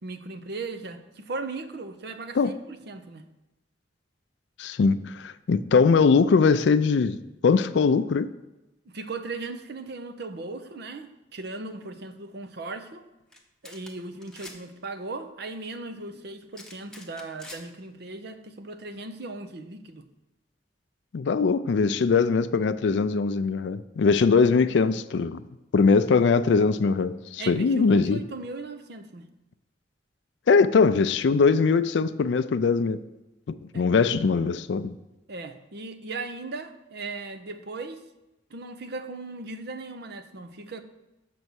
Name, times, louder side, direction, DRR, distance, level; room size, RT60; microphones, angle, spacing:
voice 1, 0.0-3.2 8.9-13.1 13.6-20.0 27.4-29.3 33.7-33.8 35.3-38.0 38.5-40.8, right 3 dB, 60° right, 8 dB, 0.6 m, -37 dB
voice 2, 4.6-7.2 7.4-8.3 21.1-25.4 25.7-28.2 30.5-33.0 33.6-34.9, left 5 dB, 65° left, 12 dB, 0.4 m, -21 dB
sound 1, 13.3-13.4 13.6-13.9 14.2-14.6 16.6-17.6, left 2 dB, 5° left, 0.8 m, -44 dB
6.8 x 5.4 x 6.2 m, 1.0 s
head